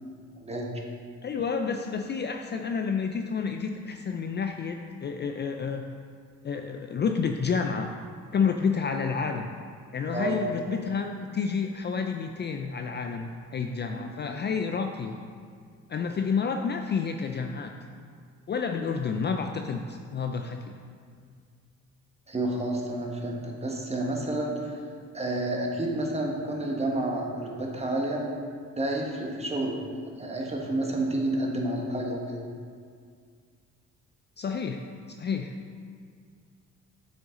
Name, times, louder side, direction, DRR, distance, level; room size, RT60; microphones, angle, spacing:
voice 1, 1.2-5.9 6.4-7.9 8.3-9.5 9.9-15.2 15.9-17.7 18.5-20.8 34.4-34.8 35.2-35.5, left 5 dB, 35° left, 5 dB, 0.4 m, -29 dB
voice 2, 22.3-24.8 25.1-28.3 28.8-29.8 30.1-32.4, right 1 dB, 20° right, -1 dB, 1.3 m, -30 dB
7.9 x 5.9 x 3.8 m, 2.1 s
cardioid pair, 90°, 30 cm